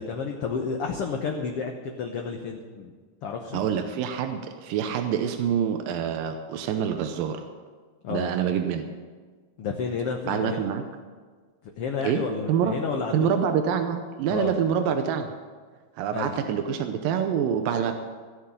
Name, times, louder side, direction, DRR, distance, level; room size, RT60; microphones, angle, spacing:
voice 1, 0.0-2.9 3.2-3.6 8.0-8.3 9.6-10.6 11.8-13.3 14.3-14.5 16.1-16.4, left 5 dB, 65° left, 2 dB, 1.5 m, -31 dB
voice 2, 3.5-7.4 8.1-8.9 10.2-10.8 12.0-12.8 13.1-15.3 16.0-17.9, right 8 dB, 90° right, 7 dB, 2.5 m, -26 dB
16.5 x 6.6 x 9.7 m, 1.5 s
omnidirectional pair, 3.9 m